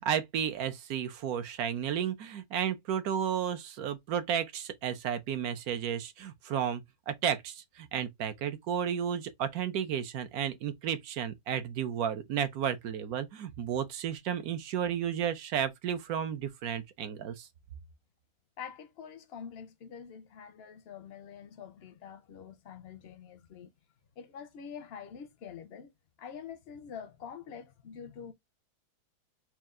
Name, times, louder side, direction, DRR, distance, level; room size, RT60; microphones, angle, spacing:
voice 1, 0.0-17.5, right 9 dB, 70° right, 1.2 m, -33 dB
voice 2, 18.6-23.7 24.2-25.9 26.2-28.3, left 7 dB, 60° left, 0.6 m, -46 dB
4.4 x 2.4 x 3.6 m
omnidirectional pair, 1.7 m